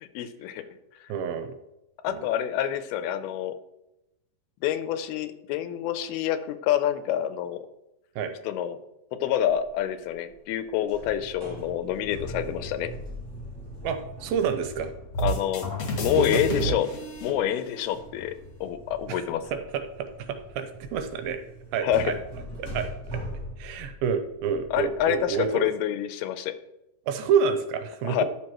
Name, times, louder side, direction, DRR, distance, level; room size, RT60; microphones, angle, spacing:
voice 1, 0.2-0.6 2.0-3.5 4.6-7.6 8.4-8.8 9.2-12.9 15.2-15.7 16.0-16.9 17.2-18.3 18.6-19.4 21.8-22.1 24.7-26.5 28.0-28.2, left 10 dB, 85° left, 11 dB, 2.5 m, -27 dB
voice 2, 1.1-1.6 2.1-2.2 8.2-8.3 13.8-14.9 16.2-16.8 19.1-19.2 19.5-21.4 21.7-22.2 22.6-23.2 23.6-25.7 27.1-28.2, right 6 dB, 85° right, 8 dB, 2.5 m, -28 dB
sound 1, 9.4-9.8 10.1-10.6 10.9-17.5 17.8-25.5, equal, 10° left, 1.5 m, -41 dB
sound 2, 15.1-18.0, right 1 dB, 60° left, 1.5 m, -30 dB
11.5 x 6.1 x 3.0 m, 0.90 s
omnidirectional pair, 4.5 m